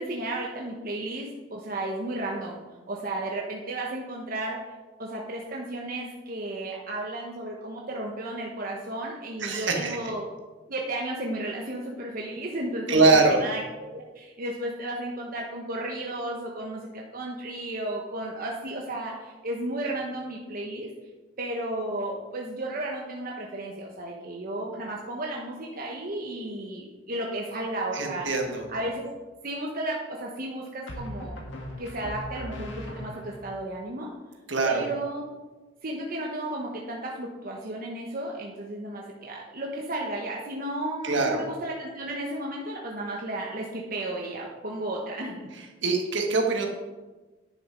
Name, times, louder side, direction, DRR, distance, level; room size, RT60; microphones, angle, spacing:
voice 1, 0.0-2.6 2.9-4.7 5.0-10.3 10.7-20.9 21.4-28.3 28.7-29.1 29.4-31.4 31.8-34.1 34.6-35.2 35.8-45.5, right 1 dB, 50° right, -2 dB, 1.2 m, -33 dB
voice 2, 9.4-10.0 12.9-13.4 27.9-28.6 34.5-34.8 41.0-41.4 45.8-46.7, right 3 dB, 65° right, 2 dB, 1.7 m, -23 dB
sound 1, 28.2-28.8 30.9-33.5, equal, 75° left, 1.9 m, -39 dB
10.5 x 6.8 x 5.2 m, 1.2 s
head